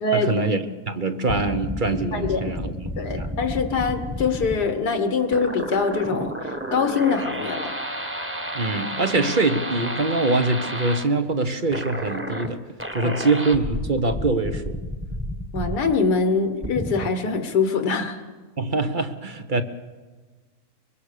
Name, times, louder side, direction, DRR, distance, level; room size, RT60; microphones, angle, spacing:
voice 1, 0.1-2.7 3.1-3.3 8.5-12.6 12.9-14.8 18.6-19.6, right 3 dB, 35° right, 9 dB, 1.1 m, -24 dB
sound 1, 1.3-4.6 5.3-11.1 11.7-12.5 12.8-15.9 16.6-17.1, equal, 10° right, 1.5 m, -31 dB
voice 2, 2.1-2.5 3.0-7.8 13.0-13.1 15.5-18.2, left 4 dB, 85° left, 7 dB, 1.8 m, -23 dB
24.0 x 22.5 x 6.7 m, 1.3 s
omnidirectional pair, 1.7 m